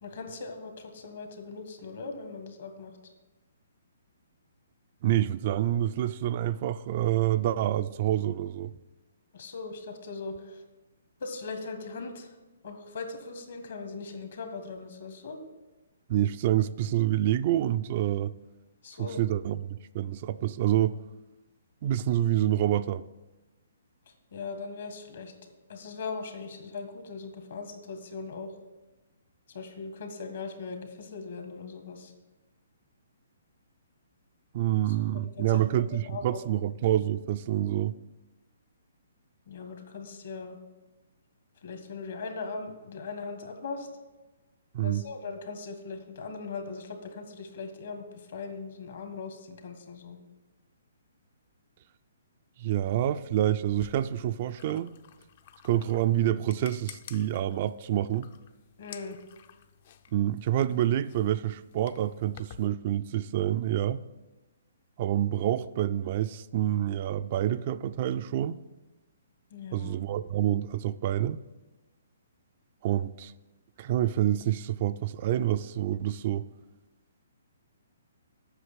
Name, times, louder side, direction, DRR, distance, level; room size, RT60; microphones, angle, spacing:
voice 1, 0.0-2.9 9.3-10.6 11.2-12.3 12.6-15.4 18.8-19.2 24.3-25.3 25.7-28.5 29.5-32.1 35.0-35.7 36.0-36.4 39.5-40.6 41.6-43.9 44.8-50.2 58.8-59.2 69.5-70.1, left 4 dB, 65° left, 1.7 m, -39 dB
voice 2, 5.0-8.8 16.1-18.3 19.0-21.0 21.8-23.0 34.5-37.9 44.7-45.0 52.6-54.9 55.6-58.3 60.1-64.0 65.0-68.6 69.7-71.4 72.8-73.3 73.8-76.5, right 12 dB, 45° right, 0.3 m, -27 dB
sound 1, 53.7-62.7, left 9 dB, 50° left, 0.6 m, -52 dB
8.1 x 6.2 x 7.5 m
hypercardioid pair, 135°, 0 cm